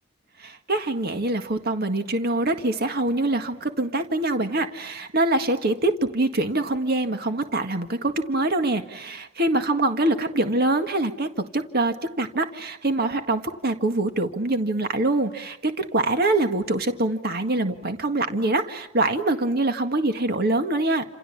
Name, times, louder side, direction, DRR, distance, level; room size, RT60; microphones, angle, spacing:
voice 1, 0.4-21.1, right 2 dB, 50° right, 7 dB, 1.8 m, -24 dB
29.5 x 27.5 x 7.3 m, 0.84 s
head